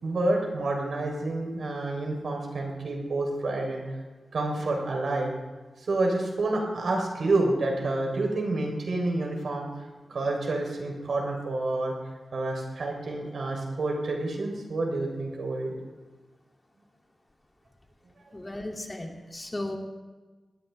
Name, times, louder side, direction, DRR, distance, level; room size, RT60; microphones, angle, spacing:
voice 1, 0.0-3.9 4.3-5.3 5.8-9.8 10.1-11.9 12.3-15.7, right 2 dB, 75° right, 1 dB, 3.6 m, -28 dB
voice 2, 18.3-19.8, left 1 dB, 30° left, 1 dB, 2.6 m, -35 dB
19.5 x 17.0 x 3.4 m, 1.3 s
cardioid pair, 45°, 0 cm